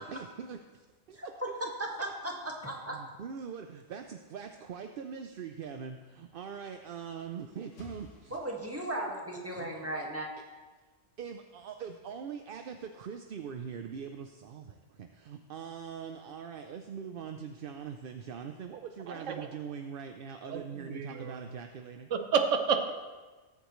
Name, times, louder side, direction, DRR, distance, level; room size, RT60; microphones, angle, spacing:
voice 1, 0.0-1.2 1.5-1.6 2.9-8.4 9.5-9.7 11.2-22.1, right 7 dB, 55° right, 6 dB, 0.7 m, -42 dB
voice 2, 1.2-3.0 8.3-10.3, right 1 dB, 10° right, -1 dB, 1.7 m, -36 dB
sound 1, 7.1-9.2, left 2 dB, 85° left, 1.9 m, -55 dB
voice 3, 19.1-19.5 20.5-21.4 22.1-22.9, right 6 dB, 90° right, 7 dB, 1.2 m, -30 dB
20.0 x 8.2 x 3.1 m, 1.3 s
omnidirectional pair, 1.2 m